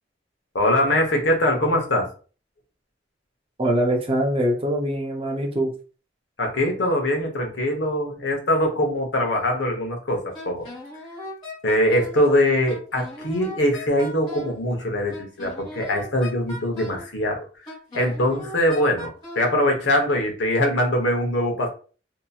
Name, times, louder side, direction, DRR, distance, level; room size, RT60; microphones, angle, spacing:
voice 1, 0.5-2.1 6.4-10.7 11.6-17.5 17.9-21.7, left 1 dB, 85° left, 2 dB, 0.9 m, -22 dB
voice 2, 3.6-5.7, right 1 dB, 30° right, 1 dB, 0.6 m, -23 dB
Wind instrument woodwind instrument, 10.3-12.2 12.7-14.6 15.1-17.1 17.7-19.5, left 1 dB, 25° left, 1.4 m, -38 dB
2.8 x 2.6 x 2.3 m, 0.38 s
head